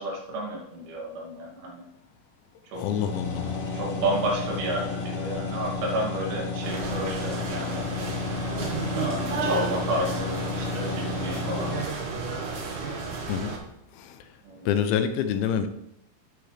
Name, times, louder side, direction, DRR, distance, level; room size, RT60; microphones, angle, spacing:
voice 1, 0.0-1.8 2.7-2.8 3.7-7.9 8.9-11.7 14.4-14.7, right 1 dB, 90° right, -2 dB, 4.9 m, -31 dB
sound 1, 2.7-11.9, left 4 dB, 60° left, 1.9 m, -32 dB
voice 2, 2.8-3.6 13.3-13.6 14.0-14.2 14.7-15.7, left 8 dB, 90° left, 9 dB, 3.3 m, -26 dB
sound 2, 6.6-13.6, right 4 dB, 55° right, 2.4 m, -32 dB
12.5 x 9.1 x 3.3 m, 0.78 s
omnidirectional pair, 5.3 m